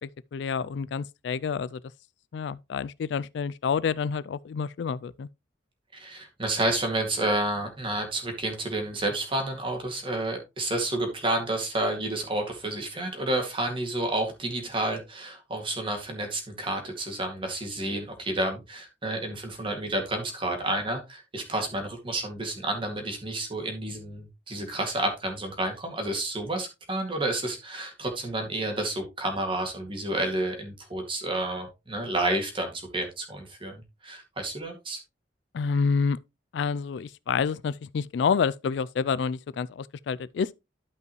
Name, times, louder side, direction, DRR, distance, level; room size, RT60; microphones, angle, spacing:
voice 1, 0.0-1.8 2.3-5.3 35.5-36.2 36.5-40.5, left 6 dB, 65° left, 0.3 m, -28 dB
voice 2, 5.9-33.7 34.0-35.0, right 1 dB, 25° right, 2.1 m, -30 dB
12.0 x 5.4 x 3.0 m
head